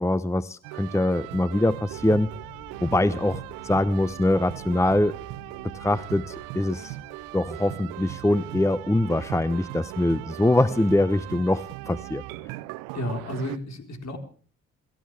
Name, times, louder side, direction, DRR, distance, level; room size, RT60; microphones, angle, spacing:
voice 1, 0.0-2.3 2.8-5.1 5.7-7.0 7.3-12.2, left 1 dB, 10° left, 16 dB, 0.8 m, -23 dB
sound 1, 0.6-13.6, right 18 dB, 85° right, 0.7 m, -39 dB
sound 2, 1.9-8.3, left 6 dB, 75° left, 6.3 m, -51 dB
voice 2, 12.9-14.2, left 1 dB, 55° left, 5 dB, 4.2 m, -32 dB
28.5 x 14.5 x 3.4 m, 0.42 s
hypercardioid pair, 45°, 33 cm